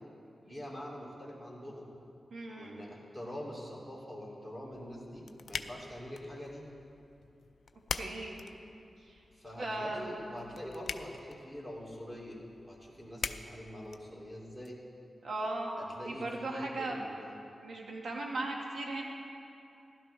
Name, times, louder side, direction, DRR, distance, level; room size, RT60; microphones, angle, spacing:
voice 1, 0.4-1.9 2.5-6.6 9.3-12.4 12.6-14.8 15.8-17.4, equal, 10° right, -4 dB, 2.7 m, -44 dB
voice 2, 2.3-2.9 7.9-8.4 9.1-9.2 9.6-10.1 15.2-17.1 17.6-19.0, right 2 dB, 70° right, -1 dB, 1.6 m, -37 dB
sound 1, 4.7-14.7, left 5 dB, 75° left, 0.4 m, -45 dB
15.5 x 12.0 x 3.3 m, 2.7 s
wide cardioid pair, 85°, 0 cm